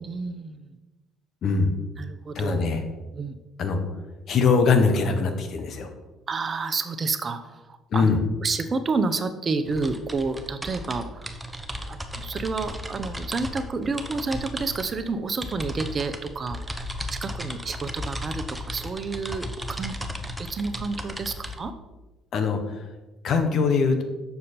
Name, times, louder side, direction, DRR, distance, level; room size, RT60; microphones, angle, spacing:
voice 1, 0.0-0.7 2.0-2.6 3.1-3.4 6.3-11.3 11.9-16.8 17.1-19.9 20.4-21.7, right 4 dB, 40° right, 9 dB, 0.7 m, -30 dB
voice 2, 1.4-1.7 2.3-2.8 3.6-3.8 4.3-5.9 7.9-8.2 22.3-22.6 23.2-24.0, left 4 dB, 60° left, 6 dB, 1.2 m, -22 dB
sound 1, 9.6-21.6, equal, 10° right, 0.9 m, -35 dB
7.0 x 6.5 x 4.3 m, 1.1 s
hypercardioid pair, 65°, 0 cm